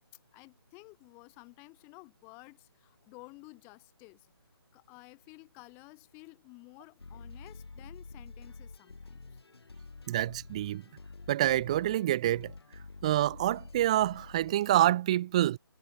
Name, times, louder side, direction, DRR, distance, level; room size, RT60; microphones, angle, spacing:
voice 1, 0.3-4.3 4.7-9.4, left 30 dB, 15° left, 2.1 m, -53 dB
sound 1, 7.0-14.7, left 3 dB, 70° left, 1.7 m, -49 dB
voice 2, 10.1-10.8 11.3-12.5 13.0-15.6, right 13 dB, 15° right, 0.3 m, -27 dB
figure-of-eight pair, 150°, 13 cm